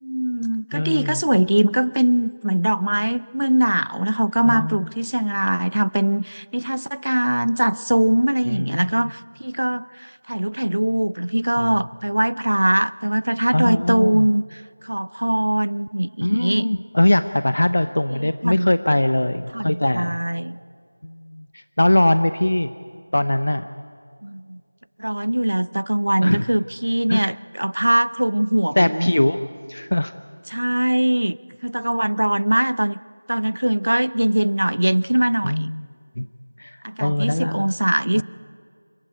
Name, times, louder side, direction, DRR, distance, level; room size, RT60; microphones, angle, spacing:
voice 1, 0.0-14.4 14.8-16.7 18.1-18.7 19.5-20.6 24.2-24.6 25.0-29.1 30.5-33.0 33.3-35.7 36.8-38.2, right 1 dB, 75° right, 19 dB, 0.5 m, -21 dB
voice 2, 0.7-1.2 4.5-4.9 8.5-8.8 11.6-11.7 13.5-14.3 16.2-20.2 21.0-22.7 23.1-23.7 26.2-26.5 27.1-27.2 28.8-29.4 29.7-30.1 35.4-35.9 36.2-36.3 36.6-37.7 38.1-38.2, left 1 dB, 55° left, 11 dB, 0.7 m, -21 dB
28.5 x 15.0 x 9.2 m, 2.2 s
figure-of-eight pair, 180°, 0 cm